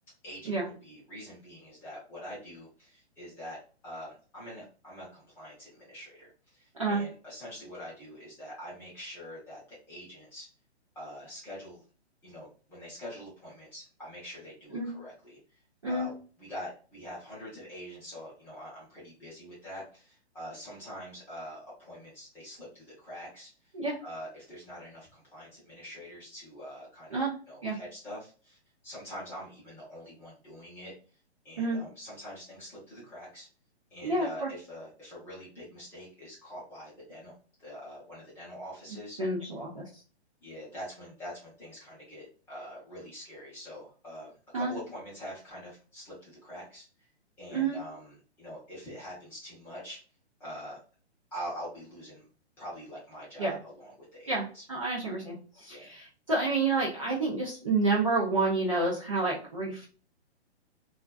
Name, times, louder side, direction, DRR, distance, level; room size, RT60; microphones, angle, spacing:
voice 1, 0.2-3.6 3.8-10.5 10.9-11.8 12.2-15.4 15.9-23.5 24.0-28.6 28.8-30.9 31.4-33.5 33.9-37.3 37.6-39.2 40.4-47.1 47.4-50.0 50.4-50.8 51.3-52.3 52.6-53.9 54.2-54.6 55.7-55.9, equal, 5° left, -8 dB, 0.7 m, -44 dB
voice 2, 34.0-34.5 39.2-40.0 44.5-44.7 47.5-47.8 53.4-53.6 54.3-59.9, right 3 dB, 30° right, -5 dB, 0.4 m, -29 dB
2.4 x 2.3 x 2.2 m, 0.38 s
hypercardioid pair, 155°, 34 cm